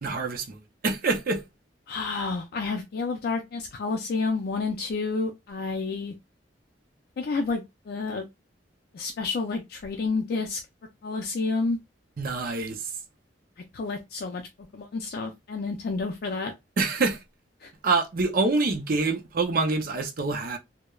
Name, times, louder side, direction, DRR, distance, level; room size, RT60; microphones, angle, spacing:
voice 1, 0.0-1.4 12.2-12.8 16.8-17.2 17.8-20.6, right 3 dB, 50° right, 0.5 m, -26 dB
voice 2, 1.9-6.1 7.2-8.3 8.9-10.6 11.0-11.8 13.7-14.4 14.7-16.5 17.6-17.7, left 4 dB, 55° left, 0.4 m, -30 dB
3.0 x 2.0 x 2.3 m
head